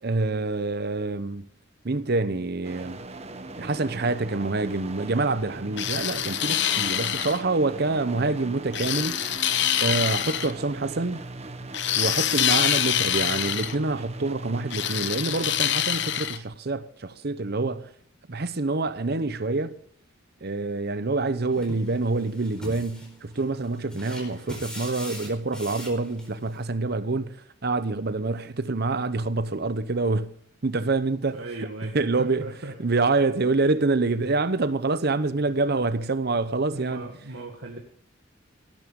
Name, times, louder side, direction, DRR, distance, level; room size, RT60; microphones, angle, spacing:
voice 1, 0.0-1.5 1.8-3.0 3.6-9.2 9.8-11.3 11.9-17.9 18.3-19.8 20.4-30.3 30.6-31.7 31.9-32.5 32.8-37.1, right 3 dB, 55° right, 0.9 m, -26 dB
sound 1, 2.6-16.3, right 2 dB, 35° right, 1.1 m, -39 dB
sound 2, 5.8-7.4 8.7-10.5 11.7-13.8 14.7-16.4, left 11 dB, 60° left, 1.0 m, -25 dB
sound 3, 21.5-26.6, equal, 5° left, 4.3 m, -42 dB
voice 2, 31.3-33.0 36.7-37.8, right 2 dB, 90° right, 2.0 m, -38 dB
18.0 x 11.0 x 3.8 m
head